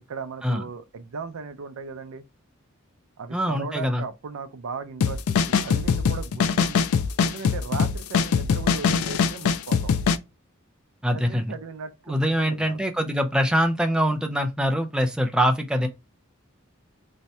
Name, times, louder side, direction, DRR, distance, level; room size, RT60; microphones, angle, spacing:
voice 1, 0.0-2.2 3.2-5.4 5.6-6.9 7.2-9.9 11.1-12.8, right 5 dB, 75° right, 0.4 m, -37 dB
voice 2, 3.3-4.0 11.0-11.4 12.1-15.9, equal, 5° right, 0.3 m, -23 dB
sound 1, 5.0-10.2, left 6 dB, 80° left, 0.3 m, -22 dB
2.6 x 2.1 x 4.1 m
head